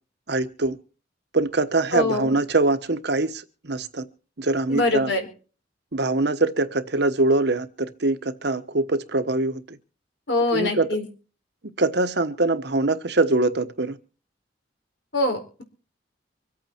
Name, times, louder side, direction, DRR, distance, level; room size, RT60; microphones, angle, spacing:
voice 1, 0.3-0.8 1.3-4.0 4.4-5.1 5.9-9.8 10.5-11.0 11.8-14.0, right 2 dB, 65° right, 1.2 m, -23 dB
voice 2, 1.9-2.3 4.7-5.3 10.3-11.0 15.1-15.6, left 2 dB, 80° left, 4.3 m, -24 dB
25.0 x 8.7 x 4.4 m
head